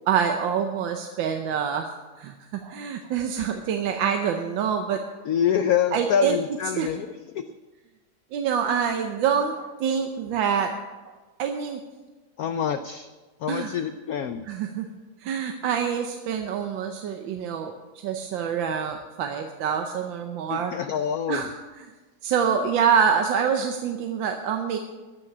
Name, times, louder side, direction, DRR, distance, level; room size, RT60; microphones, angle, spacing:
voice 1, 0.1-5.0 5.9-6.4 6.8-6.9 8.3-10.7 11.4-11.8 13.5-13.7 14.5-14.9 15.2-20.7 21.3-21.5 22.2-24.8, right 7 dB, 75° right, 5 dB, 1.5 m, -26 dB
voice 2, 5.2-7.5 12.4-13.1 13.4-14.5 20.5-21.5, left 8 dB, 80° left, 10 dB, 0.8 m, -26 dB
14.0 x 6.0 x 9.4 m, 1.3 s
omnidirectional pair, 2.2 m